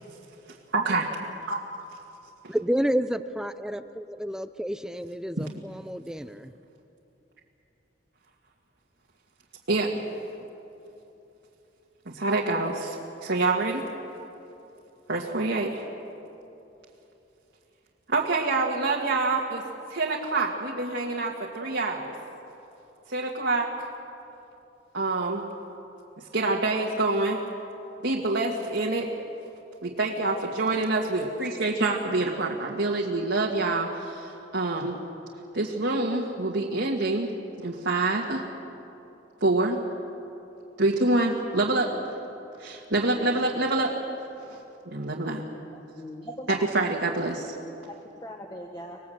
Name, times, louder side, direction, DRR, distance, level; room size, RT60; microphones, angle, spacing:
voice 1, 0.7-1.1 1.5-1.6 5.4-5.5 9.7-9.9 12.0-13.8 15.1-15.8 18.1-19.6 19.9-22.1 23.1-23.7 24.9-25.5 26.3-27.4 28.0-29.1 29.8-35.0 35.5-37.3 37.6-38.4 39.4-39.8 40.8-41.9 42.6-43.9 44.5-44.6 44.9-45.4 46.7-47.5, right 2 dB, 70° right, -2 dB, 1.8 m, -26 dB
voice 2, 2.5-6.5, equal, 5° right, 11 dB, 0.5 m, -30 dB
voice 3, 45.7-46.7 47.9-49.0, equal, 20° left, 1 dB, 1.4 m, -40 dB
25.5 x 19.5 x 7.9 m, 3.0 s
head